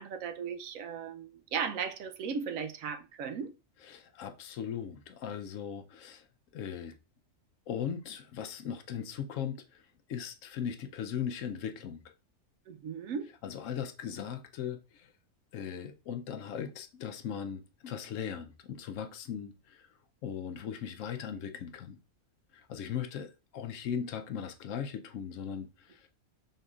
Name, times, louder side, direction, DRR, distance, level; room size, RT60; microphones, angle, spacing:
voice 1, 0.0-3.5 12.7-13.3, right 6 dB, 90° right, 1.0 m, -36 dB
voice 2, 3.8-6.2 6.5-7.0 7.7-9.8 10.1-12.0 13.4-15.1 15.5-19.9 20.2-22.0 22.5-26.1, left 8 dB, 75° left, 1.0 m, -38 dB
5.3 x 3.7 x 2.4 m
omnidirectional pair, 1.4 m